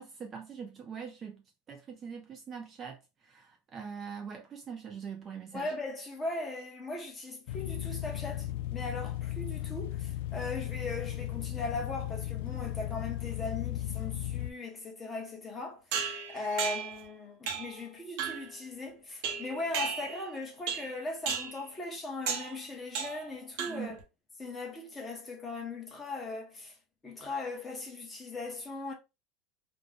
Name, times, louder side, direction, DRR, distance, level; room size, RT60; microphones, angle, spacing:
voice 1, 0.0-1.4 1.7-5.7 23.7-24.0, right 6 dB, 25° right, 0.3 m, -43 dB
voice 2, 5.5-15.8 16.3-24.0 24.4-26.7 27.0-28.9, left 3 dB, 10° left, 0.8 m, -39 dB
sound 1, 7.5-14.5, left 13 dB, 70° left, 0.3 m, -36 dB
sound 2, 15.9-17.0 17.5-17.8 18.2-18.5 19.2-20.3 20.7-21.0 21.3-21.6 22.3-22.6 22.9-23.3 23.6-24.0, right 7 dB, 60° right, 0.8 m, -35 dB
2.5 x 2.1 x 3.3 m
supercardioid pair, 165°, 0 cm